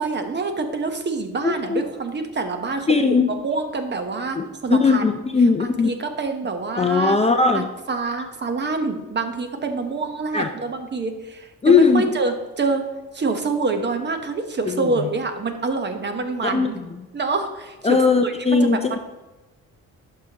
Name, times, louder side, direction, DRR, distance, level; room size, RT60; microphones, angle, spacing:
voice 1, 0.0-2.9 3.4-5.0 5.8-7.2 7.5-12.8 13.1-16.8 17.1-18.3 18.6-18.7, right 3 dB, 35° right, 6 dB, 1.1 m, -26 dB
voice 2, 1.4-1.8 2.9-3.3 4.3-5.9 6.8-7.7 10.3-10.5 11.6-12.1 14.7-15.1 16.4-16.7 17.8-19.0, left 4 dB, 20° left, 6 dB, 0.5 m, -19 dB
11.0 x 5.8 x 2.9 m, 1.1 s
cardioid pair, 90°, 30 cm